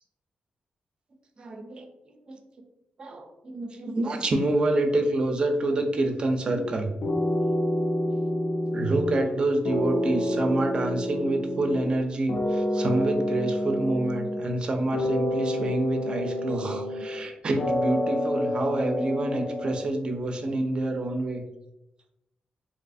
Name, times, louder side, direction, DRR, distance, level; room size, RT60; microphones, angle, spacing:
voice 1, 1.4-1.9 2.3-2.4 3.0-6.9 8.7-21.4, right 2 dB, 35° right, 5 dB, 0.4 m, -27 dB
sound 1, 6.5-6.7 7.0-9.4 9.6-12.0 12.3-14.6 14.9-17.3 17.6-19.9, left 1 dB, 55° left, 0.5 m, -28 dB
3.1 x 2.7 x 2.6 m, 0.89 s
wide cardioid pair, 175°, 3 cm